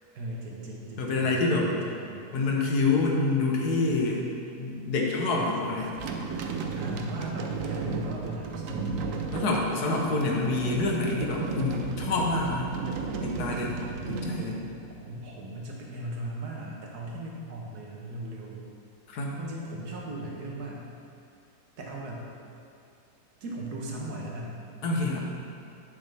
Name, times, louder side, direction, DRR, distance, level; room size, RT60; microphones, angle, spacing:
voice 1, 0.1-2.4 5.3-5.8 6.7-9.0 13.5-13.6 15.0-18.6 19.3-20.9 21.8-22.3 23.4-24.7, right 1 dB, 90° right, -2 dB, 1.7 m, -38 dB
voice 2, 1.0-1.7 2.3-4.3 4.6-5.9 8.9-9.0 9.3-12.7 13.2-13.8 14.1-14.6 19.1-19.4 24.8-25.2, left 3 dB, 90° left, -1 dB, 1.6 m, -27 dB
sound 1, 5.8-15.2, right 4 dB, 65° right, 0.9 m, -34 dB
8.1 x 7.2 x 3.4 m, 2.5 s
omnidirectional pair, 1.6 m